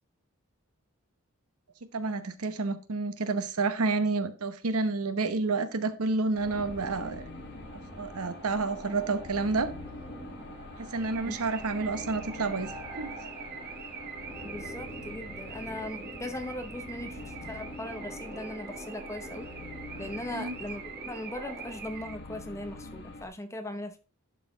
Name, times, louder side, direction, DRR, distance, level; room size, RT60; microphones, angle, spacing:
voice 1, 1.9-7.3 7.7-9.7 10.8-13.1 20.3-20.6, right 3 dB, 85° right, 11 dB, 0.9 m, -30 dB
sound 1, 6.4-23.3, left 2 dB, 50° left, 1.2 m, -46 dB
sound 2, 6.4-21.8, right 1 dB, 20° right, 1.6 m, -46 dB
Car / Alarm, 11.0-22.2, right 8 dB, 45° right, 0.9 m, -45 dB
voice 2, 14.4-19.5 20.0-24.0, left 1 dB, 15° left, 8 dB, 0.8 m, -39 dB
11.0 x 4.2 x 3.8 m, 0.33 s
head